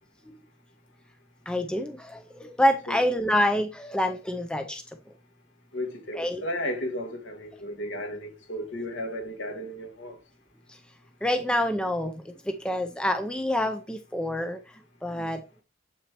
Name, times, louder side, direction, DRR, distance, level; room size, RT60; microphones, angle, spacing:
voice 1, 1.5-4.8 6.1-6.4 10.7-10.8 11.2-15.4, left 1 dB, 5° left, 0.5 m, -27 dB
voice 2, 5.7-10.2, left 1 dB, 60° left, 1.8 m, -34 dB
7.9 x 6.0 x 3.0 m
head